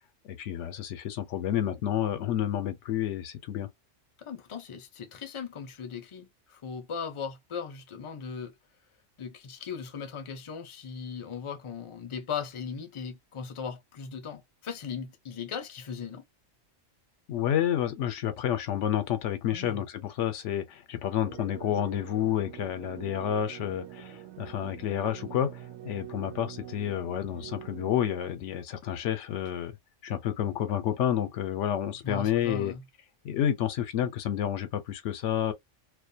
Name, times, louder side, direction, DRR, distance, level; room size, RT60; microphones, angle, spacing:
voice 1, 0.2-3.7 17.3-29.7 30.0-32.7 33.2-35.5, left 10 dB, 85° left, 0.9 m, -30 dB
voice 2, 4.2-8.5 9.2-16.2 19.5-19.8 32.0-32.8, left 6 dB, 35° left, 0.5 m, -38 dB
sound 1, 21.2-28.1, right 13 dB, 75° right, 0.8 m, -44 dB
2.4 x 2.2 x 2.6 m
omnidirectional pair, 1.2 m